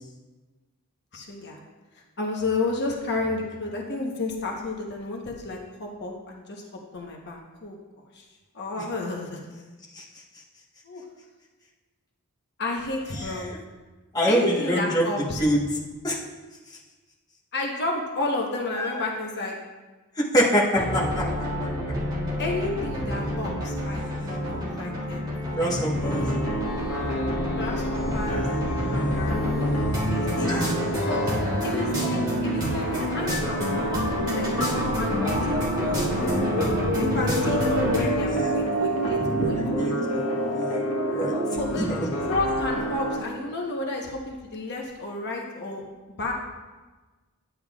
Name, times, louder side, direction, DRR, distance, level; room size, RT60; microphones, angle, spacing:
voice 1, 1.1-1.6 1.9-6.6 6.9-7.8 8.1-8.2 8.5-9.6 10.8-11.0 12.6-13.5 14.3-15.4 17.5-19.6 22.4-25.2 26.2-26.4 27.6-28.5 28.9-29.7 30.3-30.5 31.0-31.3 31.6-34.0 34.3-39.9 41.6-41.9 42.3-45.8 46.2-46.3, left 2 dB, 50° left, 0 dB, 0.9 m, -31 dB
voice 2, 13.2-13.6 14.1-15.1 15.4-15.7 16.0-16.2 18.8-18.9 20.2-21.3 25.5-26.3 30.4-30.7 38.3-38.6 39.2-40.3 40.5-40.8 41.1-41.3 41.8-42.1, equal, 15° left, -4 dB, 1.1 m, -25 dB
sound 1, 20.8-38.0, left 1 dB, 20° right, 2.2 m, -28 dB
sound 2, 26.0-43.2, equal, 75° left, 1.2 m, -30 dB
sound 3, 34.2-42.8, right 1 dB, 80° right, 1.0 m, -29 dB
10.0 x 8.8 x 2.3 m, 1.3 s
head